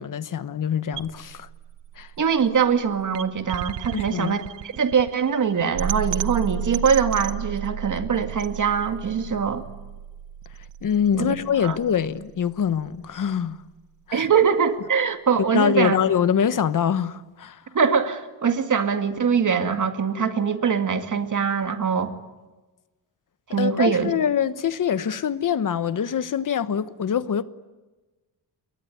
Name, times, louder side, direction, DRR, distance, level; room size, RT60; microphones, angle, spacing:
voice 1, 0.0-1.5 2.0-2.1 3.9-4.4 10.8-13.6 14.1-14.3 15.5-17.6 23.6-27.4, left 8 dB, 50° left, 1.2 m, -24 dB
sound 1, 0.9-13.0, right 9 dB, 80° right, 1.2 m, -34 dB
voice 2, 2.2-4.4 4.8-9.6 11.1-11.3 11.6-11.8 14.1-16.0 17.7-22.1 23.5-24.1, right 6 dB, 45° right, 2.2 m, -22 dB
28.0 x 22.5 x 9.3 m
wide cardioid pair, 140°, 42 cm